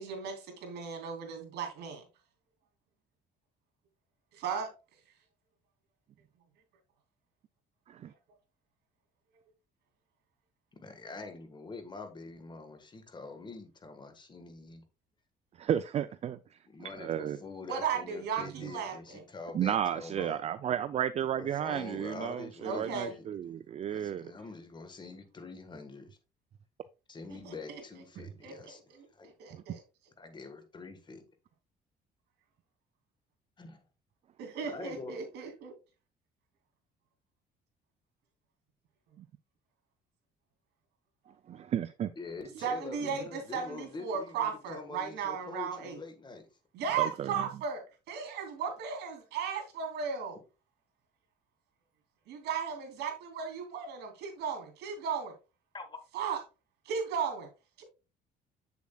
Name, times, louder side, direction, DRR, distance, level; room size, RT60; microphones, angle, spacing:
voice 1, 0.0-2.0 4.3-4.7 17.7-19.2 22.6-23.1 27.3-27.5 28.4-29.1 29.4-29.8 34.4-35.7 42.6-46.0 46.7-47.8 48.1-50.4 52.3-55.3 56.1-56.4 56.8-57.5 57.8-57.9, right 6 dB, 80° right, 2.7 m, -36 dB
voice 2, 10.7-14.8 16.7-20.5 21.4-23.3 23.8-26.2 27.1-28.8 29.1-29.3 30.2-31.2 33.6-33.8 34.7-35.2 42.1-46.5 55.7-56.0, left 3 dB, 25° left, 1.4 m, -45 dB
voice 3, 15.6-16.4 17.0-17.4 19.5-24.3 41.5-42.1 47.0-47.3, right 10 dB, 40° right, 0.4 m, -32 dB
7.4 x 6.9 x 2.3 m
cardioid pair, 110°, 17 cm